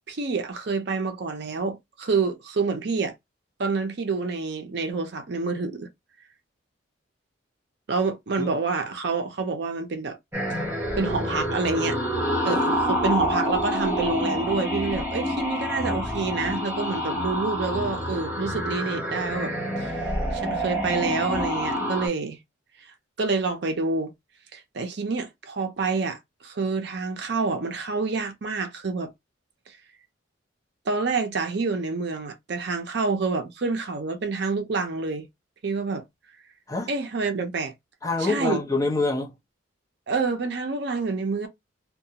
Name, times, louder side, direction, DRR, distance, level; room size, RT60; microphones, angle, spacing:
voice 1, 0.1-3.1 3.6-5.9 7.9-10.2 10.5-10.6 11.0-12.0 12.4-20.0 20.3-22.4 23.2-24.1 24.5-29.1 29.7-29.8 30.9-35.3 35.6-36.0 36.9-37.7 38.2-38.6 40.1-41.5, right 4 dB, 55° right, 0.5 m, -27 dB
sound 1, 10.3-22.1, equal, 10° right, 0.8 m, -27 dB
voice 2, 38.0-39.3, left 3 dB, 15° left, 0.7 m, -26 dB
2.5 x 2.2 x 2.8 m
head